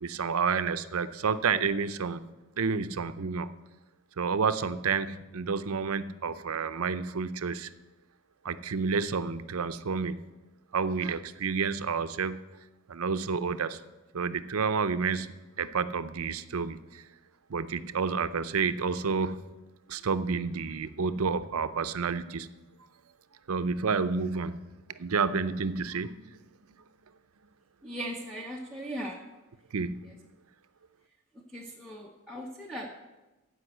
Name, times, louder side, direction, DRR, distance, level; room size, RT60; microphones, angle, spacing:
voice 1, 0.0-2.2 2.6-3.5 4.2-7.7 8.4-10.2 10.7-12.4 12.9-13.8 14.1-17.0 17.5-19.5 19.9-22.5 23.5-24.6 24.9-26.2 29.7-30.1, right 5 dB, 75° right, 13 dB, 0.6 m, -30 dB
voice 2, 27.8-29.2 31.5-33.0, right 1 dB, 5° left, -1 dB, 0.8 m, -38 dB
15.0 x 5.2 x 7.9 m, 1.1 s
head